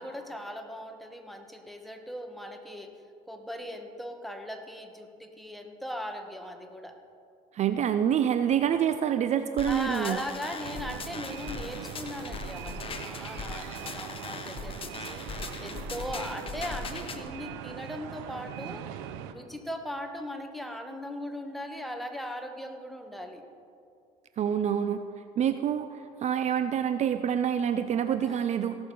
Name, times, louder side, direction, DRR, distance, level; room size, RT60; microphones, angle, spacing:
voice 1, 0.0-2.9 3.3-7.0 9.7-15.3 15.6-18.9 19.3-23.4 27.4-27.5 28.2-28.5, equal, ahead, 4 dB, 1.4 m, -39 dB
voice 2, 7.5-10.2 24.4-25.0 25.4-28.8, right 9 dB, 45° right, 10 dB, 0.5 m, -27 dB
sound 1, 9.6-17.2, left 4 dB, 35° left, 1.1 m, -40 dB
sound 2, 10.6-19.3, right 9 dB, 80° right, 0.8 m, -41 dB
17.5 x 6.9 x 5.4 m, 2.4 s
supercardioid pair, 85°, 16 cm